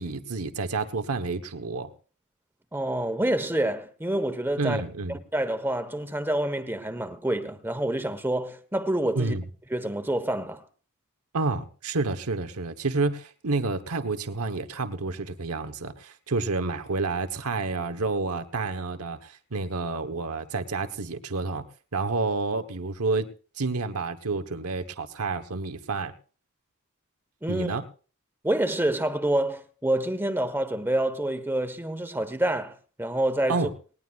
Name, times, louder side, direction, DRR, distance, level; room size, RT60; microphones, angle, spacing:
voice 1, 0.0-1.9 4.6-5.2 9.1-9.4 11.3-21.7 21.9-23.3 23.6-26.1 27.5-27.8 33.5-33.7, right 3 dB, 80° right, 1.1 m, -29 dB
voice 2, 2.7-4.8 5.1-9.3 9.7-10.6 27.4-27.7 28.4-33.7, right 1 dB, 10° right, 1.2 m, -27 dB
19.0 x 19.0 x 2.4 m
head